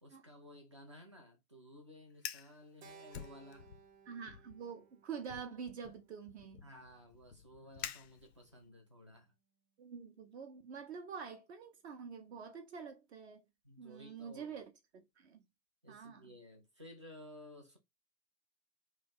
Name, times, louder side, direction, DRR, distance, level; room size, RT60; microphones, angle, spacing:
voice 1, 0.0-3.7 6.6-9.3 13.6-14.6 15.8-17.8, left 1 dB, 20° right, 0.3 m, -55 dB
Fire, 2.1-2.5 3.1-3.9 4.3-4.6 5.3-8.6, left 9 dB, 45° left, 0.4 m, -48 dB
Keyboard (musical), 2.8-7.2, right 5 dB, 70° right, 0.9 m, -61 dB
voice 2, 4.1-6.6 9.8-13.4 13.8-15.5 15.9-16.3, right 6 dB, 40° right, 0.7 m, -47 dB
3.1 x 2.4 x 4.0 m
figure-of-eight pair, 125°, 49 cm